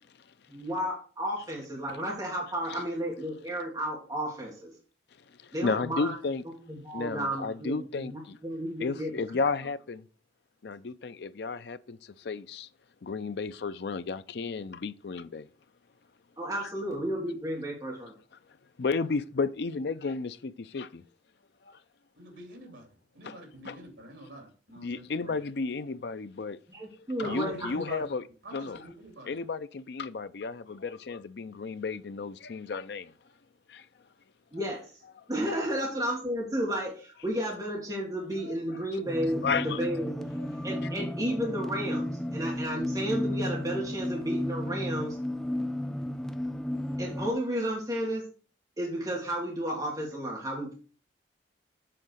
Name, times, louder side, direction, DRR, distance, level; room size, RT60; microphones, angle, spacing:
voice 1, 0.5-4.7 5.5-6.2 6.7-9.2 16.4-18.1 26.7-27.5 34.5-35.0 35.3-40.3 40.6-45.2 47.0-48.2 48.8-50.7, equal, 20° right, 1.8 m, -32 dB
voice 2, 5.3-6.4 6.9-8.4 8.8-10.0 10.6-12.7 13.0-15.5 16.6-16.7 18.8-21.0 21.6-21.8 23.2-23.4 23.6-23.8 24.8-26.6 27.0-28.2 28.5-28.8 29.3-33.1 33.7-33.9 38.5-38.6 39.4-39.9, left 4 dB, 60° left, 0.5 m, -33 dB
voice 3, 22.2-25.3 27.2-28.0 28.4-29.4, right 1 dB, 80° right, 2.7 m, -45 dB
sound 1, 39.1-47.3, left 1 dB, ahead, 0.4 m, -33 dB
7.7 x 3.9 x 6.3 m
head